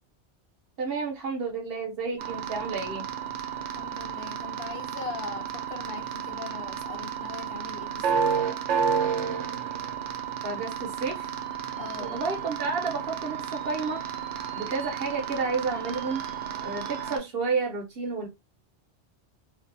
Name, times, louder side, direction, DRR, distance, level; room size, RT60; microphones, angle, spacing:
voice 1, 0.8-3.1 10.4-11.3 12.0-14.0 14.5-16.2 16.6-18.3, right 4 dB, 60° right, 0.8 m, -31 dB
sound 1, 2.2-17.2, right 7 dB, 90° right, 0.9 m, -32 dB
voice 2, 3.6-8.3 11.8-12.2, left 5 dB, 70° left, 0.8 m, -41 dB
2.6 x 2.4 x 2.5 m
omnidirectional pair, 1.2 m